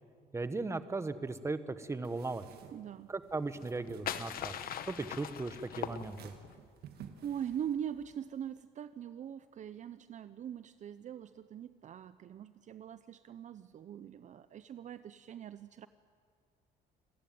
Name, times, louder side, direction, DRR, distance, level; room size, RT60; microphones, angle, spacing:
voice 1, 0.3-2.5 3.1-6.3, right 3 dB, 15° right, 12 dB, 1.2 m, -37 dB
sound 1, 2.0-8.2, right 8 dB, 70° right, 1.8 m, -56 dB
voice 2, 2.7-3.1 7.2-15.9, right 9 dB, 45° right, 13 dB, 0.7 m, -42 dB
sound 2, 3.5-6.6, left 9 dB, 60° left, 1.3 m, -41 dB
27.5 x 14.5 x 9.3 m, 2.1 s
cardioid pair, 110°, 17 cm